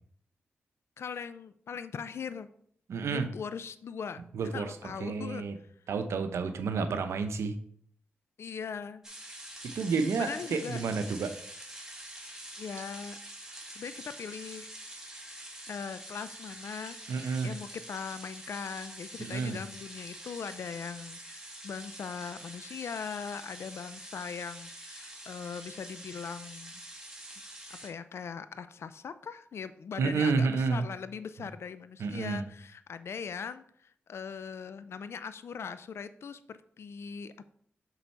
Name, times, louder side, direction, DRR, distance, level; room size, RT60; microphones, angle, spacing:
voice 1, 1.0-2.5 3.0-4.2 4.5-5.4 8.4-9.0 10.1-10.8 12.3-13.2 13.7-14.7 15.6-26.8 27.7-37.5, left 6 dB, 70° left, 13 dB, 0.5 m, -40 dB
voice 2, 2.9-3.3 4.3-4.8 5.0-5.6 5.9-7.5 9.6-11.3 17.1-17.5 19.2-19.6 30.0-30.9 32.0-32.5, right 4 dB, 85° right, 8 dB, 0.7 m, -30 dB
sound 1, 9.0-27.9, right 1 dB, 15° right, 2.0 m, -46 dB
6.8 x 4.0 x 4.5 m, 0.62 s
cardioid pair, 50°, 5 cm